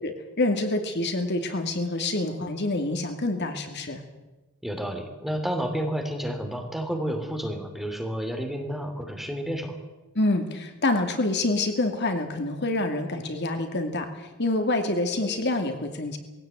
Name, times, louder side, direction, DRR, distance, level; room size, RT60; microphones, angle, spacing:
voice 1, 0.0-4.0 10.2-16.2, left 2 dB, 50° left, 6 dB, 2.4 m, -27 dB
voice 2, 4.6-9.7, equal, ahead, 4 dB, 2.8 m, -30 dB
20.0 x 16.5 x 9.1 m, 1.1 s
head